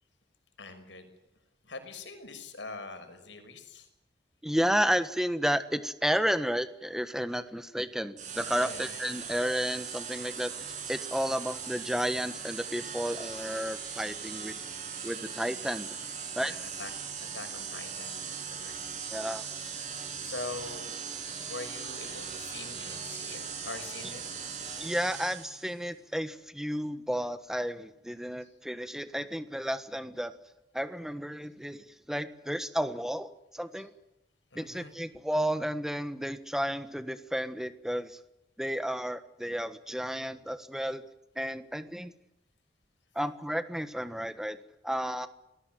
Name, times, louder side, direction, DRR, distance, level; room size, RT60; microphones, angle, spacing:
voice 1, 0.6-1.1 1.6-3.9 8.6-9.4 16.4-16.9 17.3-18.7 20.2-20.8 21.5-24.2 28.4-28.5 34.5-34.9, left 3 dB, 85° left, 7 dB, 6.0 m, -43 dB
voice 2, 4.4-10.5 10.9-14.6 15.0-16.0 16.3-16.5 19.1-19.5 24.8-30.3 30.7-33.9 34.5-38.2 38.6-41.0 41.4-42.1 43.1-44.6 44.8-45.3, equal, 5° right, 11 dB, 1.5 m, -32 dB
sound 1, 8.2-25.7, right 6 dB, 40° right, 7.6 m, -39 dB
28.0 x 20.5 x 7.8 m, 0.88 s
head